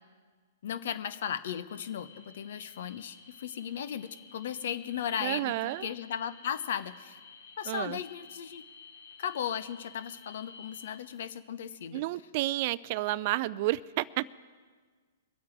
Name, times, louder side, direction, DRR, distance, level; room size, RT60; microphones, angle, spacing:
voice 1, 0.6-7.2 7.6-8.6 9.2-12.0, left 8 dB, 65° left, 14 dB, 0.8 m, -36 dB
sound 1, 1.7-11.0, left 5 dB, 85° left, 2.8 m, -53 dB
voice 2, 5.2-5.9 7.7-8.0 11.9-14.3, right 17 dB, 45° right, 20 dB, 0.3 m, -31 dB
23.5 x 8.5 x 4.6 m, 1.5 s
hypercardioid pair, 125°, 0 cm